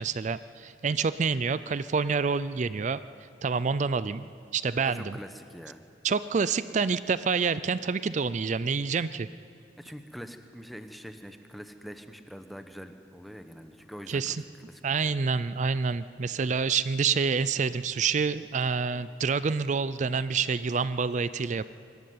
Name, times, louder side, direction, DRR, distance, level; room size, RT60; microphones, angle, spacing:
voice 1, 0.0-3.0 3.4-5.2 6.0-9.3 14.1-14.4 14.8-21.7, right 5 dB, 40° right, 15 dB, 0.4 m, -27 dB
voice 2, 4.8-5.8 9.8-14.4 14.7-15.1, equal, ahead, 7 dB, 1.0 m, -44 dB
24.0 x 13.5 x 9.4 m, 2.5 s
head